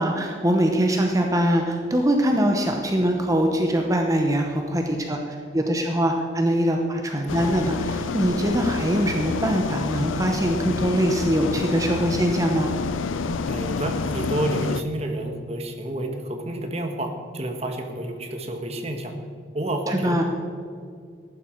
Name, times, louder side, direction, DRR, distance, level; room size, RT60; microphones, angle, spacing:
voice 1, 0.0-12.7 19.9-20.2, equal, 15° right, 2 dB, 0.8 m, -23 dB
sound 1, 7.3-14.8, left 4 dB, 90° left, 0.5 m, -28 dB
voice 2, 13.5-19.1 19.5-20.2, right 1 dB, 35° right, 4 dB, 1.4 m, -29 dB
14.5 x 11.5 x 4.6 m, 2.2 s
head